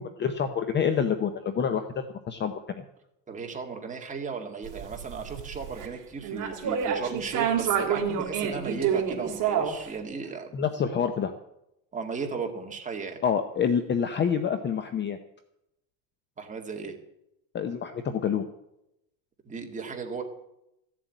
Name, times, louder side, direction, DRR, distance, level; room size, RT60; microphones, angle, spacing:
voice 1, 0.0-2.8 10.5-11.3 13.2-15.2 17.5-18.4, left 7 dB, 25° left, 9 dB, 0.7 m, -27 dB
voice 2, 3.3-10.6 11.9-13.2 16.4-16.9 19.5-20.2, right 5 dB, 15° right, 2 dB, 2.1 m, -35 dB
sound 1, 4.6-5.9 6.2-9.9, right 8 dB, 40° right, 2.9 m, -28 dB
15.0 x 7.4 x 9.2 m, 0.84 s
cardioid pair, 145°, 47 cm